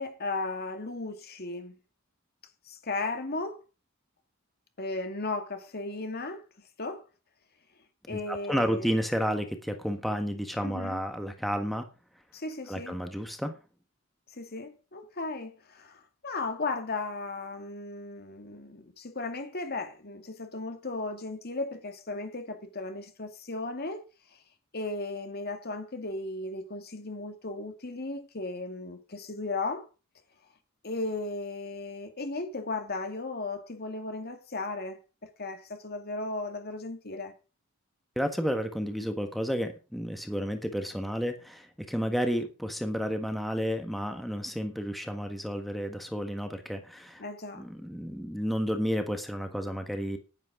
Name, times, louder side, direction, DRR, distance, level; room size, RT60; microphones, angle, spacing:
voice 1, 0.0-1.8 2.7-3.6 4.8-6.4 6.8-7.0 8.1-9.0 10.6-11.0 12.3-13.0 14.3-24.0 24.7-29.9 30.8-35.0 35.4-37.3 47.2-47.7, left 3 dB, 50° left, 2.2 m, -36 dB
voice 2, 8.1-11.9 12.7-13.5 38.1-47.2 47.5-50.2, equal, ahead, 1.4 m, -31 dB
10.5 x 10.5 x 5.0 m
head